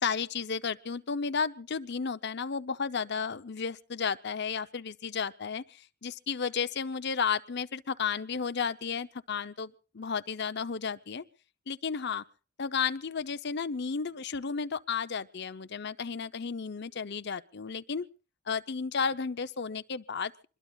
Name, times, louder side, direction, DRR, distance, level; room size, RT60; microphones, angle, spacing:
voice 1, 0.0-11.2 11.7-12.2 12.6-18.1 18.5-20.5, left 5 dB, 55° left, 0.7 m, -33 dB
25.0 x 21.5 x 2.4 m
head